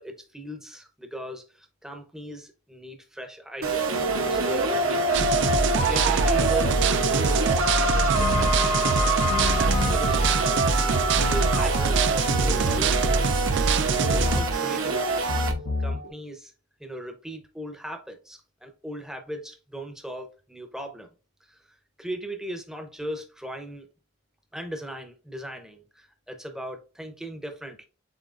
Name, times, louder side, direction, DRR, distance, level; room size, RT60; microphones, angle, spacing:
voice 1, 0.0-5.1 5.4-8.9 9.6-13.3 14.0-15.3 15.8-16.5 16.8-21.1 21.5-23.9 24.5-27.9, right 1 dB, 5° right, 0.6 m, -38 dB
sound 1, 3.6-15.5, right 2 dB, 75° right, 0.8 m, -25 dB
sound 2, 5.1-14.4, right 4 dB, 55° right, 0.4 m, -24 dB
sound 3, 8.0-16.1, left 3 dB, 85° left, 1.1 m, -33 dB
7.5 x 2.8 x 2.5 m
head